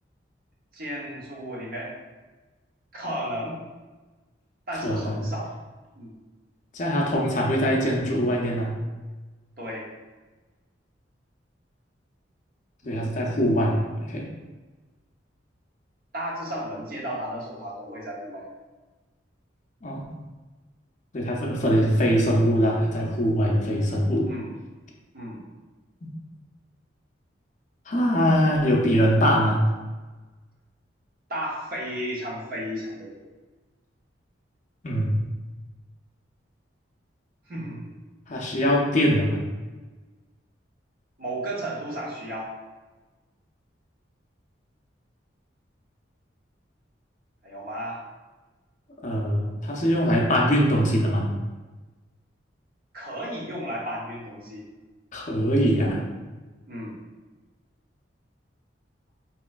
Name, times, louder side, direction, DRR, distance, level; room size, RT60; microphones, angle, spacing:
voice 1, 0.7-1.9 2.9-3.6 4.7-5.5 6.0-6.2 9.6-9.9 12.8-13.1 16.1-18.5 24.3-24.5 25.1-25.4 31.3-33.1 37.5-37.9 41.2-42.5 47.4-48.0 52.9-54.7 56.7-57.0, equal, 50° right, -3 dB, 0.8 m, -33 dB
voice 2, 4.8-5.2 6.7-8.7 12.8-14.3 19.8-20.0 21.1-24.3 26.0-26.1 27.9-29.7 34.8-35.2 38.3-39.4 49.0-51.3 55.1-56.0, equal, 40° left, -1 dB, 0.5 m, -22 dB
4.2 x 3.0 x 2.4 m, 1.2 s
head